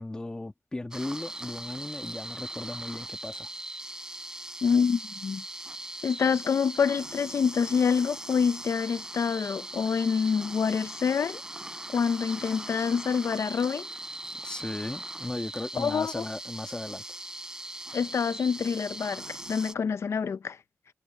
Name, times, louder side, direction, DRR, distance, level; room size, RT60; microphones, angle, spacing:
voice 1, 0.0-3.5 14.4-17.0, left 2 dB, 15° left, 1.6 m, -36 dB
sound 1, 0.9-19.7, right 1 dB, 15° right, 5.5 m, -40 dB
voice 2, 4.6-5.4 6.0-11.4 11.9-13.9 15.8-16.2 17.9-20.6, left 6 dB, 65° left, 0.7 m, -26 dB
wide cardioid pair, 140°, 5 cm